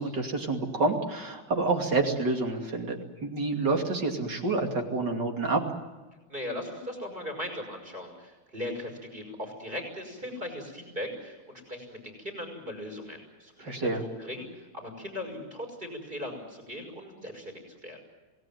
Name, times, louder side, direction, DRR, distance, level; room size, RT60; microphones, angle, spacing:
voice 1, 0.0-5.6 13.6-14.0, right 3 dB, 55° right, 3 dB, 3.3 m, -28 dB
voice 2, 6.3-18.0, left 1 dB, 25° right, 4 dB, 5.9 m, -39 dB
27.5 x 18.5 x 9.3 m, 1.2 s
omnidirectional pair, 2.3 m